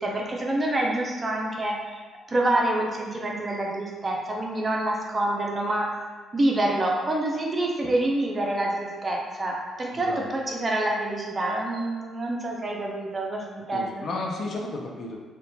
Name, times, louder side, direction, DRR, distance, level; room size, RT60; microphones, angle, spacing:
voice 1, 0.0-2.0 2.3-5.9 6.3-14.0, right 1 dB, 30° right, -1 dB, 0.4 m, -27 dB
voice 2, 9.9-10.3 13.7-15.2, left 2 dB, 55° left, -1 dB, 0.4 m, -33 dB
2.8 x 2.2 x 2.2 m, 1.4 s
cardioid pair, 90°, 0 cm